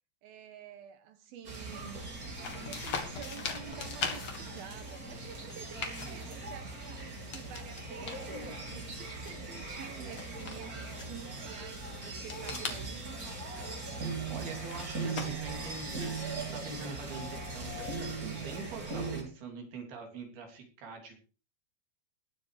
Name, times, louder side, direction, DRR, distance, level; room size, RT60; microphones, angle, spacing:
voice 1, 0.2-13.2, right 9 dB, 80° right, 2.2 m, -49 dB
sound 1, 1.4-19.2, right 3 dB, 25° right, 2.4 m, -40 dB
sound 2, 2.4-16.8, left 5 dB, 55° left, 1.5 m, -43 dB
voice 2, 14.0-21.2, right 4 dB, 55° right, 4.8 m, -44 dB
20.0 x 7.6 x 4.9 m
omnidirectional pair, 5.7 m